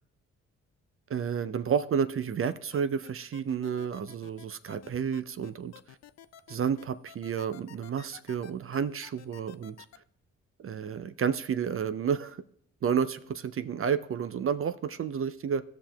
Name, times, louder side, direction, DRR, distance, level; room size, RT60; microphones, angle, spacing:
voice 1, 1.1-5.7 6.5-9.8 10.6-12.4 12.8-15.6, right 7 dB, 40° right, 0.5 m, -31 dB
sound 1, 2.4-10.0, left 10 dB, 45° left, 0.5 m, -51 dB
16.5 x 5.7 x 2.2 m
hypercardioid pair, 40°, 36 cm